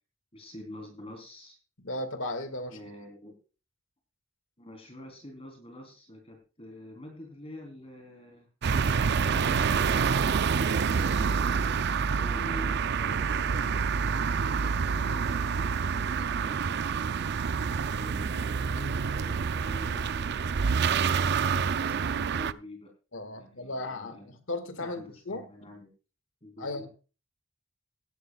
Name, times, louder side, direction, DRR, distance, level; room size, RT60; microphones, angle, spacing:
voice 1, 0.3-1.6 2.6-3.4 4.6-8.5 9.1-13.8 14.2-16.8 17.7-22.9 23.3-24.3 24.8-25.9 26.4-26.9, left 1 dB, 30° left, 3.6 m, -47 dB
voice 2, 1.8-2.8 23.1-25.5 26.6-26.9, left 2 dB, 75° left, 1.9 m, -36 dB
sound 1, 8.6-22.5, right 6 dB, 60° right, 0.5 m, -27 dB
17.0 x 11.5 x 2.3 m
head